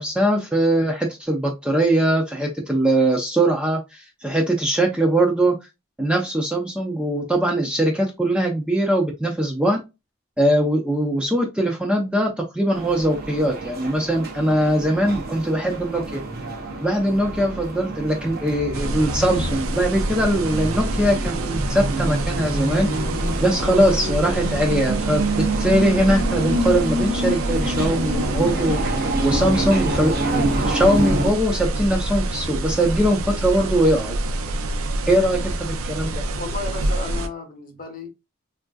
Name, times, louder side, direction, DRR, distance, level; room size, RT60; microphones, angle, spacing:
voice 1, 0.0-5.6 6.0-9.8 10.4-16.2 16.8-22.9 23.4-34.1 35.1-36.2, right 1 dB, 5° right, 0.5 m, -21 dB
sound 1, 12.7-31.3, right 1 dB, 45° right, 0.7 m, -27 dB
sound 2, 18.7-37.3, right 1 dB, 80° right, 0.5 m, -27 dB
voice 2, 35.1-35.6 36.3-38.1, left 3 dB, 40° left, 0.9 m, -34 dB
3.5 x 2.6 x 2.3 m
head